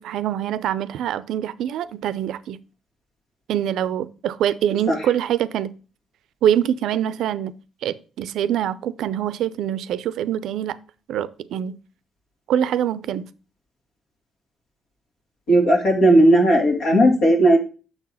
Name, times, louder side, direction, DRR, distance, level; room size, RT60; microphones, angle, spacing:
voice 1, 0.0-2.6 3.5-5.7 6.4-7.5 7.8-10.8 11.1-11.8 12.5-13.3, right 10 dB, 80° right, 0.4 m, -24 dB
voice 2, 15.5-17.6, right 1 dB, 85° left, 2.6 m, -15 dB
6.9 x 4.0 x 5.6 m
cardioid pair, 90°, 0 cm